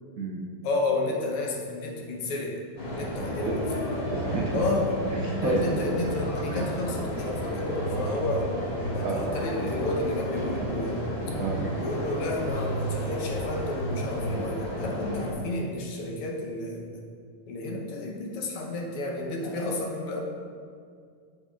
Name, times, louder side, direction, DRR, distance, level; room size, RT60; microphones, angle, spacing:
voice 1, 0.6-2.6 2.9-3.9 4.5-4.9 5.4-8.5 8.9-11.1 11.8-17.0 17.5-20.2, left 2 dB, 90° left, 0 dB, 1.9 m, -31 dB
sound 1, 2.8-15.3, equal, 30° left, 1.5 m, -31 dB
voice 2, 4.1-4.6 5.1-5.8 6.5-6.7 9.0-9.3 11.4-11.6 19.4-19.7, right 3 dB, 80° right, -3 dB, 0.7 m, -31 dB
9.0 x 6.8 x 2.4 m, 2.2 s
omnidirectional pair, 2.4 m